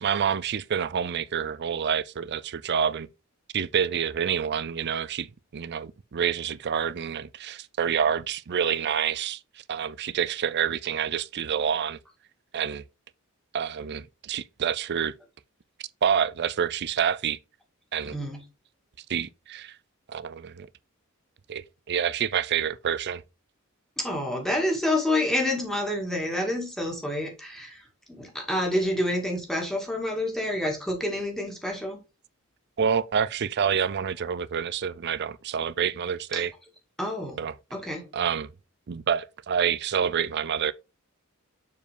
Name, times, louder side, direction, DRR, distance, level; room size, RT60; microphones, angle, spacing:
voice 1, 0.0-3.1 3.5-9.4 9.7-12.0 12.5-12.8 13.5-15.1 16.0-17.4 17.9-18.2 19.1-19.8 20.1-20.7 21.5-23.2 32.8-36.5 37.4-37.5 38.1-38.5 38.9-40.7, right 7 dB, 55° right, 0.5 m, -27 dB
voice 2, 18.1-18.4 24.0-27.8 28.1-32.0 36.3-36.5 37.0-37.4 37.7-38.1, left 1 dB, ahead, 2.1 m, -28 dB
7.0 x 4.7 x 3.5 m
head